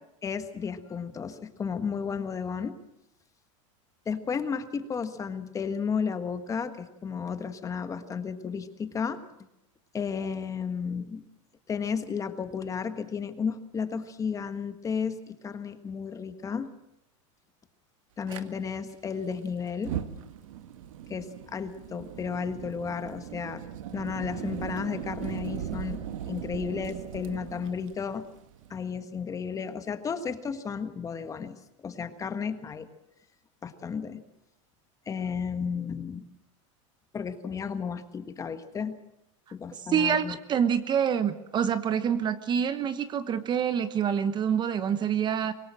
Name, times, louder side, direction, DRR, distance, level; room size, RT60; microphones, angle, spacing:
voice 1, 0.2-2.8 4.0-9.2 9.9-11.2 11.7-16.7 18.2-20.0 21.1-23.6 23.9-26.0 26.3-28.2 28.7-31.6 31.8-32.9 33.6-34.2 35.1-36.2 37.1-39.0 39.5-40.4, left 6 dB, 20° left, 10 dB, 1.5 m, -33 dB
Fire, 18.3-18.4 19.7-28.8, right 10 dB, 85° right, 1.7 m, -38 dB
voice 2, 39.9-45.5, right 8 dB, 25° right, 12 dB, 1.1 m, -26 dB
25.0 x 18.5 x 7.6 m, 0.85 s
supercardioid pair, 140°, 17 cm